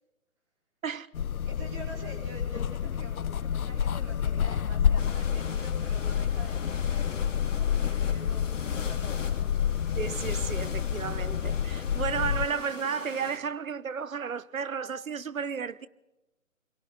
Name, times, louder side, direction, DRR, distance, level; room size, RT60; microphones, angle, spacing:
sound 1, 1.1-12.5, left 8 dB, 90° left, 0.7 m, -29 dB
voice 1, 1.4-9.5, right 1 dB, 20° right, 4.8 m, -47 dB
sound 2, 5.0-13.4, left 5 dB, 60° left, 2.9 m, -42 dB
voice 2, 9.9-15.9, right 6 dB, 70° right, 1.2 m, -33 dB
28.5 x 23.0 x 4.0 m
hypercardioid pair, 170°, 41 cm